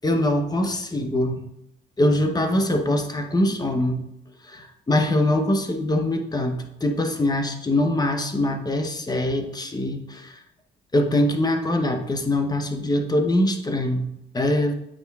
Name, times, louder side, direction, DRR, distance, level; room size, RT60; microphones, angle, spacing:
voice 1, 0.0-1.4 2.0-4.0 4.5-10.4 10.9-14.1 14.3-14.7, left 1 dB, 20° left, 4 dB, 0.9 m, -23 dB
8.5 x 4.7 x 2.4 m, 0.83 s
cardioid pair, 90°, 20 cm